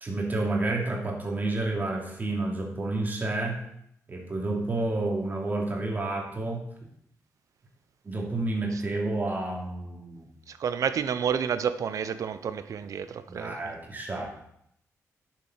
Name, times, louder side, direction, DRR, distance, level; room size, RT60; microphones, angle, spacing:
voice 1, 0.0-3.6 4.1-6.7 8.0-10.3 13.3-14.3, right 2 dB, 30° right, 0 dB, 2.7 m, -30 dB
voice 2, 10.5-13.7, right 7 dB, 70° right, 12 dB, 0.7 m, -30 dB
10.5 x 7.5 x 5.7 m, 0.74 s
wide cardioid pair, 130°, 6 cm